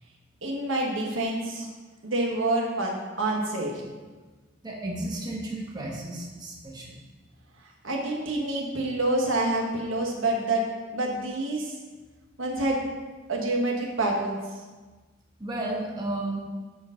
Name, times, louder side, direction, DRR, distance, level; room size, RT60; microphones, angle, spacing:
voice 1, 0.4-1.7 2.0-3.8 7.8-10.6 10.9-11.7 12.4-12.8 13.3-14.4, right 2 dB, 75° right, -1 dB, 1.4 m, -27 dB
voice 2, 4.6-7.0 15.4-16.4, right 1 dB, 20° right, -3 dB, 1.1 m, -33 dB
7.0 x 4.6 x 5.0 m, 1.3 s
head